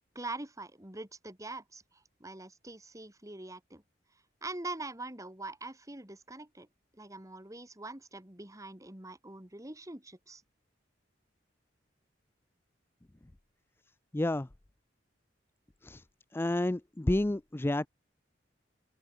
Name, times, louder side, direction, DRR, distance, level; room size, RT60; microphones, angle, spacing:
voice 1, 0.1-3.8 4.4-6.7 6.9-10.4, right 2 dB, 20° right, 2.5 m, -43 dB
voice 2, 14.1-14.5 15.8-16.0 16.3-17.9, left 1 dB, 10° left, 0.4 m, -30 dB
open air
head